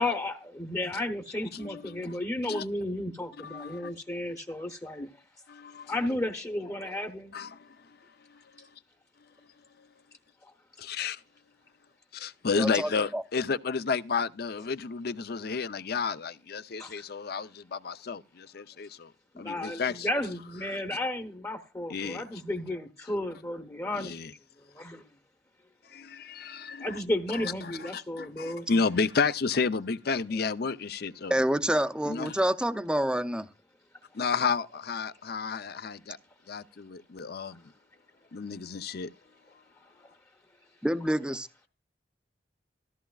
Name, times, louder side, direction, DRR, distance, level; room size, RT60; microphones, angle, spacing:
voice 1, 0.0-5.1 5.9-7.3 10.4-10.5 16.8-17.0 19.3-24.1 24.7-25.0 26.8-28.7 40.0-40.1, left 1 dB, 20° left, 0.9 m, -33 dB
voice 2, 1.5-2.2 2.5-2.6 3.4-3.9 5.5-5.9 7.3-7.8 10.8-11.2 12.1-19.1 19.4-20.1 20.7-20.8 21.9-22.2 24.0-24.3 25.9-27.0 27.3-31.4 32.1-32.4 34.1-36.2 36.5-37.6 38.3-39.1, left 5 dB, 60° left, 0.6 m, -32 dB
voice 3, 12.6-13.2 31.3-33.5 40.8-41.7, right 1 dB, 5° right, 0.6 m, -28 dB
14.0 x 14.0 x 2.4 m
head